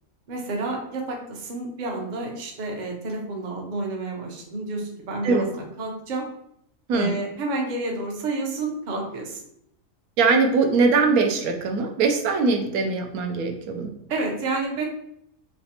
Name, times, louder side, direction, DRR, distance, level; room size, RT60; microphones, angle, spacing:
voice 1, 0.3-6.3 6.9-9.4 14.1-14.8, right 2 dB, 45° right, 0 dB, 0.6 m, -30 dB
voice 2, 10.2-13.9, right 4 dB, 85° right, 4 dB, 1.1 m, -21 dB
3.3 x 2.9 x 2.8 m, 0.74 s
omnidirectional pair, 1.5 m